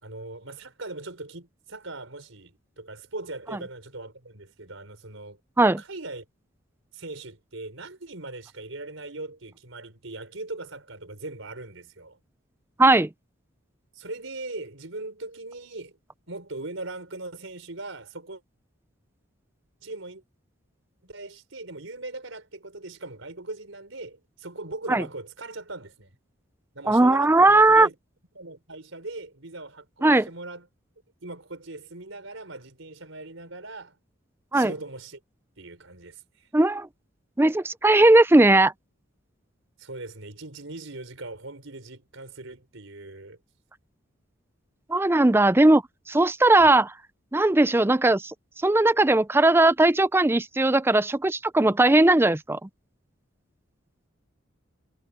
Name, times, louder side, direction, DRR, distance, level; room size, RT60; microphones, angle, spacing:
voice 1, 0.0-5.4 5.8-6.2 6.9-12.2 13.9-16.0 16.3-18.4 19.8-20.2 21.0-26.1 26.7-27.9 28.3-30.7 31.2-34.0 34.5-35.2 35.6-36.5 39.8-43.4 46.7-46.8, right 2 dB, 80° right, 4.6 m, -40 dB
voice 2, 12.8-13.1 24.9-25.0 26.9-27.9 30.0-30.3 34.5-34.7 36.5-36.9 37.4-38.7 44.9-45.8 46.1-46.9 47.3-48.3 48.6-52.7, right 2 dB, 10° right, 0.5 m, -18 dB
head